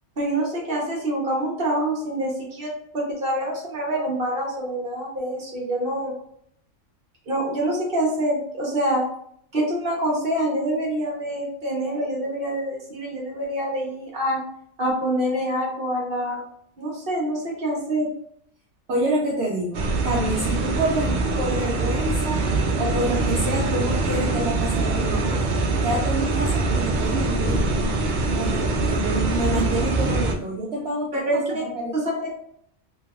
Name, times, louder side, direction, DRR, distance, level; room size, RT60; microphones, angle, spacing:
voice 1, 0.2-2.7 2.9-6.1 7.3-9.0 9.5-14.4 14.8-16.4 16.8-18.1 31.1-31.6 31.9-32.4, right 1 dB, 45° right, -3 dB, 1.3 m, -26 dB
voice 2, 18.9-25.4 25.8-27.9 28.4-31.2 31.6-32.0, right 1 dB, 60° right, -2 dB, 0.8 m, -27 dB
sound 1, 19.7-30.3, right 3 dB, 85° right, 0.4 m, -23 dB
3.3 x 3.0 x 2.4 m, 0.66 s
omnidirectional pair, 1.4 m